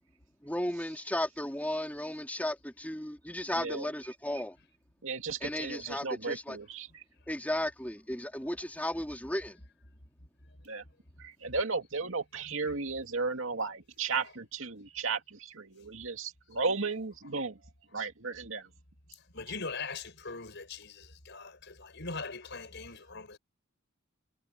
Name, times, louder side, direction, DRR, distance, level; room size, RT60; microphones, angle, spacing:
voice 1, 0.4-4.6 5.4-6.6 7.3-9.6, left 1 dB, 10° left, 3.3 m, -35 dB
voice 2, 3.5-3.9 4.3-4.4 5.0-7.0 10.6-10.8 11.2-17.6 17.9-18.7, right 4 dB, 65° right, 2.5 m, -35 dB
voice 3, 19.3-23.4, left 4 dB, 55° left, 6.6 m, -41 dB
head